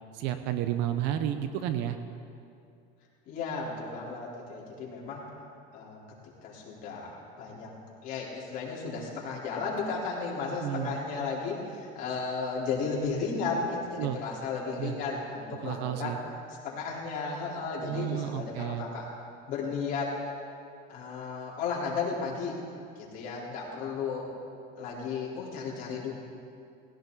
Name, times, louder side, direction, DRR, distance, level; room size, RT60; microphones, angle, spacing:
voice 1, 0.1-2.0 10.6-10.9 14.0-14.2 14.8-15.0 15.6-16.2 17.8-18.9, right 11 dB, 60° right, 9 dB, 0.8 m, -31 dB
voice 2, 3.3-5.2 5.7-6.0 6.4-7.7 8.0-16.2 16.5-19.1 19.5-20.2 20.9-22.6 23.0-24.3 24.8-26.1, left 4 dB, 40° left, -5 dB, 4.0 m, -34 dB
19.0 x 16.5 x 4.0 m, 2.5 s
cardioid pair, 170°, 21 cm